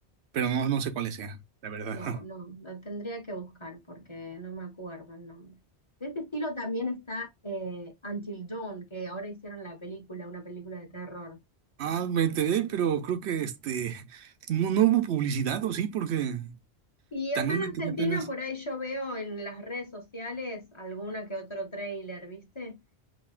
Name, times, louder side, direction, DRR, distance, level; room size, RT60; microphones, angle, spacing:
voice 1, 0.3-2.2 11.8-16.5 17.4-18.3, right 9 dB, 80° right, 0.9 m, -28 dB
voice 2, 1.9-5.6 6.0-11.4 17.1-22.8, equal, 25° left, 1.1 m, -36 dB
5.6 x 2.8 x 2.4 m
omnidirectional pair, 1.1 m